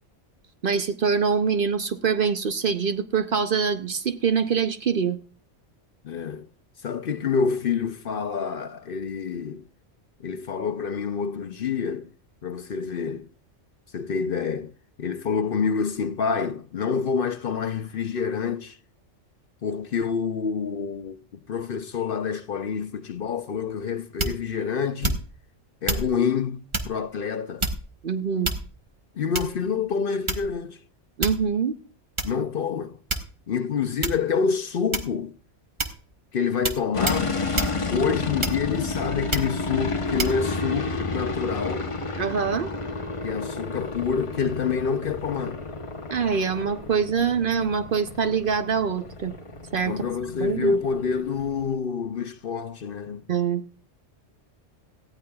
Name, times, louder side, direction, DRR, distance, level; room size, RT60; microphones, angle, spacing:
voice 1, 0.6-5.2 28.0-28.5 31.2-31.8 42.2-42.7 46.1-49.3 49.7-49.9 50.4-50.8 53.3-53.6, right 6 dB, 50° right, 0.8 m, -24 dB
voice 2, 6.0-6.5 6.8-9.6 10.2-12.1 12.4-13.3 13.9-14.7 15.0-18.8 19.6-25.2 25.8-27.7 29.2-30.8 32.2-33.0 33.5-35.3 36.3-37.4 37.9-41.9 43.2-45.7 49.9-53.2, left 6 dB, 55° left, 0.8 m, -27 dB
sound 1, 24.2-24.5 25.0-25.4 25.9-26.1 26.7-27.0 27.6-28.0 28.4-28.9 29.3-29.7 30.3-30.6 31.2-31.5 32.2-32.3 33.1-33.5 34.0-34.3 34.9-35.3 35.8-36.0 36.6-36.8 37.1-37.2 37.6-37.8 38.4-38.8 39.3-39.6 40.2-40.4, right 2 dB, 25° right, 1.0 m, -28 dB
sound 2, 36.9-51.7, left 3 dB, 30° left, 0.9 m, -31 dB
18.0 x 14.0 x 2.3 m
omnidirectional pair, 1.2 m